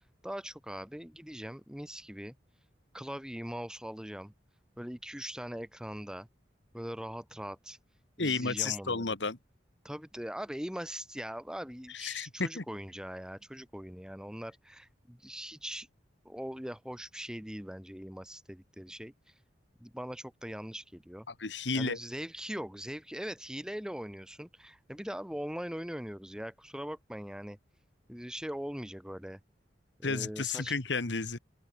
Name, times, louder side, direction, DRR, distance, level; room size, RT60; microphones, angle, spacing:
voice 1, 0.2-2.3 2.9-4.3 4.8-6.3 6.7-7.8 8.2-9.2 9.8-15.9 16.2-19.3 19.8-21.3 21.7-27.6 28.1-29.4 30.0-30.7, equal, 5° right, 1.9 m, -41 dB
voice 2, 8.2-9.4 11.9-12.6 21.3-22.0 30.0-31.4, left 4 dB, 75° left, 1.7 m, -32 dB
open air
head